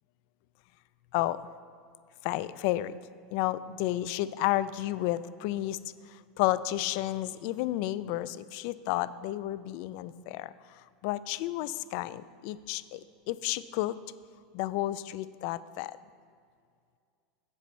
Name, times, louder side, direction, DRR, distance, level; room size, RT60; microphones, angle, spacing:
voice 1, 2.2-2.9 3.3-5.8 6.1-14.0 14.5-16.0, left 15 dB, 65° left, 16 dB, 0.3 m, -32 dB
10.5 x 7.9 x 3.2 m, 2.3 s
supercardioid pair, 110°, 0 cm